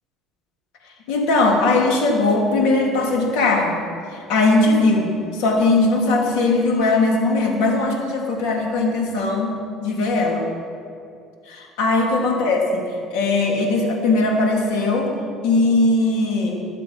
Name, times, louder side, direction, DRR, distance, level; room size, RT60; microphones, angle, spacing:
voice 1, 1.1-3.8 4.1-9.5 9.8-10.4 11.5-15.1 15.4-16.6, left 2 dB, 80° left, 0 dB, 2.9 m, -19 dB
21.5 x 7.5 x 5.4 m, 2.4 s
cardioid pair, 110°, 0 cm